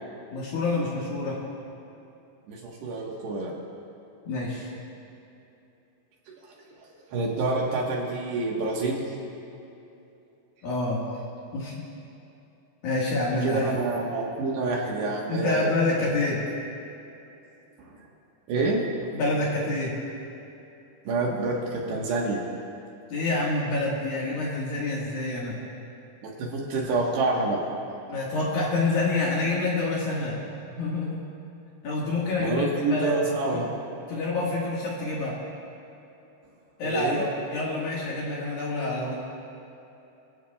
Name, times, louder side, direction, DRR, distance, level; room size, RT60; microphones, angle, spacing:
voice 1, 0.3-1.4 4.3-4.7 10.6-11.0 11.5-11.9 12.8-13.8 15.3-16.4 19.1-20.0 23.1-25.6 28.1-30.4 30.7-31.2 31.8-33.2 33.5-33.6 34.1-35.4 36.8-39.1, left 2 dB, 60° left, -5 dB, 3.0 m, -27 dB
voice 2, 2.5-3.5 7.1-9.0 13.4-15.7 17.8-17.9 18.5-18.8 21.0-22.4 26.2-27.6 32.4-33.7 36.8-37.3, right 3 dB, 65° right, -2 dB, 3.2 m, -27 dB
25.0 x 15.0 x 2.4 m, 2.8 s
omnidirectional pair, 5.6 m